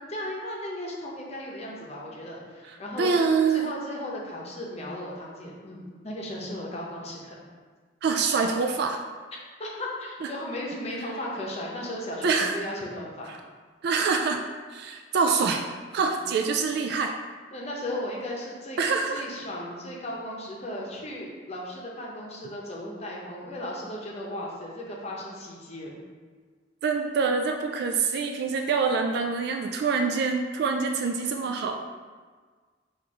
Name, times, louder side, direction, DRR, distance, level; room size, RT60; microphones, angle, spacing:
voice 1, 0.1-3.1 3.5-7.3 9.6-13.3 17.5-18.8 19.1-26.0, left 1 dB, 35° left, -2 dB, 0.8 m, -36 dB
voice 2, 2.7-3.8 8.0-9.0 10.2-10.3 12.2-12.5 13.8-14.4 14.7-15.6 15.9-17.1 18.8-19.2 26.8-31.8, right 5 dB, 65° right, 4 dB, 0.3 m, -25 dB
4.2 x 2.5 x 4.8 m, 1.5 s
head